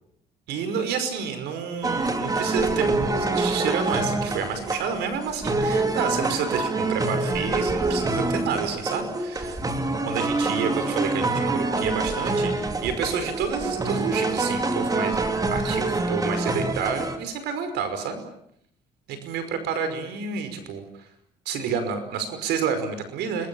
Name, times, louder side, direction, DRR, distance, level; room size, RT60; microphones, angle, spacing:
voice 1, 0.5-9.6 10.0-18.2 19.1-20.8 21.5-23.5, right 6 dB, 80° right, 10 dB, 5.4 m, -29 dB
sound 1, 1.8-17.2, right 2 dB, 20° right, 3.0 m, -26 dB
30.0 x 21.5 x 7.2 m, 0.71 s
cardioid pair, 110°, 17 cm